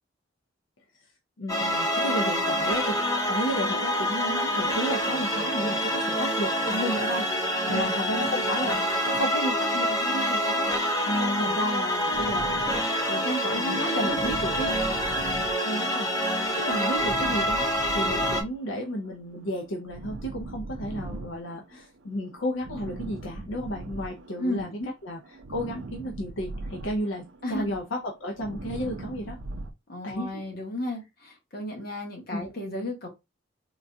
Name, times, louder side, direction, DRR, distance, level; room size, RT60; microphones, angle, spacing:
voice 1, 1.4-10.6 11.1-12.6 13.6-14.8 15.6-16.1 16.6-24.7 25.0-25.2 25.5-29.4 30.0-30.4 32.3-32.5, equal, 75° left, 0.6 m, -32 dB
sound 1, 1.5-18.4, equal, 15° left, 0.6 m, -26 dB
voice 2, 11.1-11.6 13.1-14.2 24.4-24.9 27.4-27.8 29.9-33.1, left 1 dB, 50° left, 1.3 m, -33 dB
sound 2, 12.1-24.7 25.0-29.7, right 2 dB, 65° right, 0.5 m, -40 dB
3.7 x 2.3 x 2.6 m
head